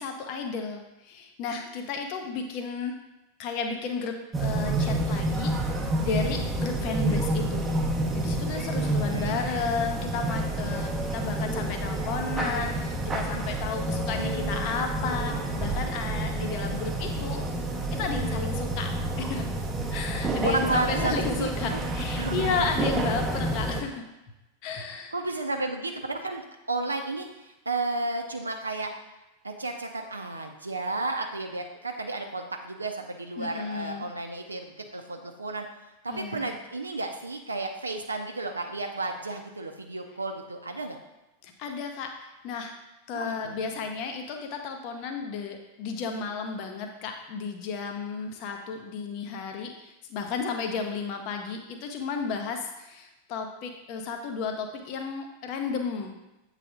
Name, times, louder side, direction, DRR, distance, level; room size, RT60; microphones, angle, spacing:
voice 1, 0.0-2.9 3.4-17.5 17.9-18.9 19.2-19.4 19.9-24.0 24.6-25.1 33.4-34.1 36.1-36.5 41.4-42.8 43.1-56.1, left 5 dB, 40° left, 4 dB, 0.7 m, -33 dB
sound 1, 4.3-23.8, right 2 dB, 15° right, 0.7 m, -29 dB
voice 2, 8.8-9.4 14.1-14.6 20.4-21.8 22.2-22.6 25.1-28.9 29.4-35.7 36.0-41.0 43.1-43.9, right 2 dB, 80° right, 4 dB, 0.5 m, -33 dB
7.6 x 3.3 x 3.8 m, 0.99 s
figure-of-eight pair, 90°, 0 cm